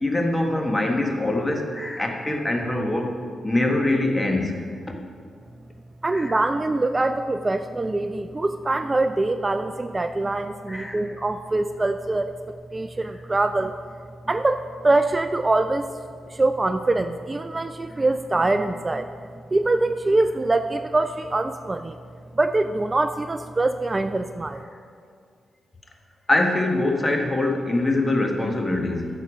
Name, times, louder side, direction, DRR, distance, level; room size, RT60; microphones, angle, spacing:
voice 1, 0.0-3.2 3.4-4.9 6.1-6.4 10.7-11.0 26.3-29.1, left 2 dB, 20° left, 2 dB, 1.4 m, -23 dB
voice 2, 6.0-12.3 12.7-13.7 14.3-15.9 16.3-19.1 19.5-22.0 22.3-24.6, right 2 dB, 30° right, 9 dB, 0.4 m, -23 dB
9.6 x 6.7 x 5.1 m, 2.1 s
supercardioid pair, 50°, 0 cm